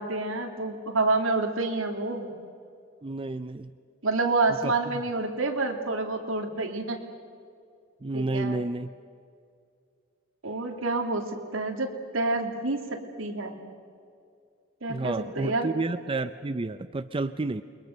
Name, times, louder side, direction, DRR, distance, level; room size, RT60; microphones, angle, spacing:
voice 1, 0.0-2.3 4.0-7.0 8.1-8.6 10.4-13.6 14.8-15.7, right 3 dB, 80° right, 4 dB, 2.7 m, -28 dB
voice 2, 3.0-3.7 4.6-5.0 8.0-8.9 14.9-17.6, right 2 dB, 25° right, 11 dB, 0.5 m, -30 dB
29.0 x 22.5 x 6.6 m, 2.4 s
head